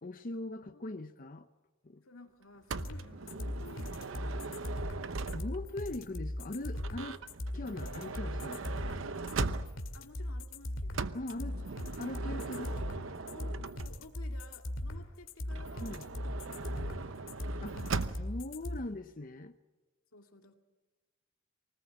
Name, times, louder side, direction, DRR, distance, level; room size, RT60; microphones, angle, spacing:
voice 1, 0.0-1.5 1.8-2.0 5.3-7.2 7.5-8.6 11.1-11.6 12.0-12.8 15.8-16.0 17.6-19.6, left 2 dB, 40° left, 0.7 m, -41 dB
voice 2, 0.5-0.9 2.0-4.9 9.9-11.6 12.2-12.8 13.3-16.0 16.4-17.5 18.7-18.8 20.1-20.6, left 2 dB, 90° left, 2.2 m, -55 dB
Motor vehicle (road) / Sliding door, 2.7-5.8 6.7-10.0 10.9-14.2 15.5-18.4, right 4 dB, 70° right, 0.8 m, -40 dB
sound 1, 2.8-18.8, left 1 dB, 75° left, 2.1 m, -39 dB
24.5 x 19.5 x 8.7 m
head